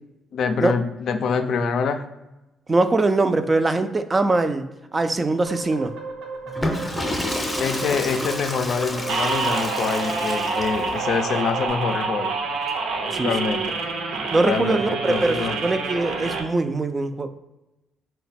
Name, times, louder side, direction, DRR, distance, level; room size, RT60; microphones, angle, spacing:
voice 1, 0.3-2.0 7.6-12.3 13.2-13.8 14.4-15.6, left 5 dB, 70° left, 8 dB, 0.4 m, -25 dB
voice 2, 2.7-5.9 13.1-13.3 14.3-17.3, right 2 dB, 25° right, 9 dB, 0.3 m, -22 dB
sound 1, 5.4-11.7, right 4 dB, 90° right, 1.0 m, -35 dB
Water / Toilet flush, 6.5-11.0, left 1 dB, 10° left, 0.6 m, -29 dB
sound 2, 9.1-16.4, right 4 dB, 70° right, 0.6 m, -27 dB
3.8 x 2.2 x 4.1 m, 0.99 s
cardioid pair, 90°, 0 cm